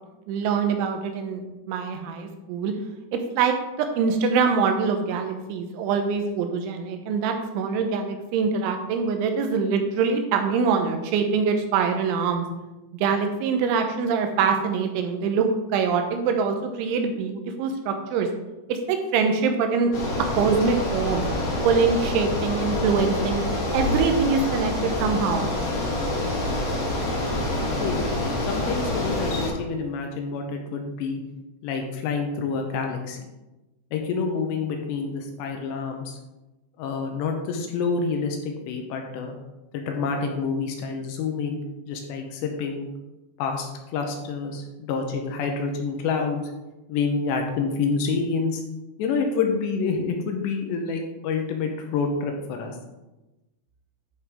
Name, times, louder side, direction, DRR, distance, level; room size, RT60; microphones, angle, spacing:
voice 1, 0.3-1.4 1.7-2.7 3.1-3.6 4.0-12.4 12.9-18.3 18.7-19.9 20.4-21.2 21.6-23.4 23.7-25.5, right 5 dB, 85° right, 5 dB, 3.2 m, -24 dB
Bicycle, 19.9-29.5, left 2 dB, 55° left, 2.1 m, -26 dB
voice 2, 28.5-31.2 31.6-33.2 33.9-36.2 36.8-39.4 39.7-42.9 43.4-46.4 46.9-48.6 49.0-52.8, left 5 dB, 80° left, 3 dB, 2.8 m, -28 dB
11.0 x 5.2 x 3.5 m, 1.0 s
omnidirectional pair, 5.4 m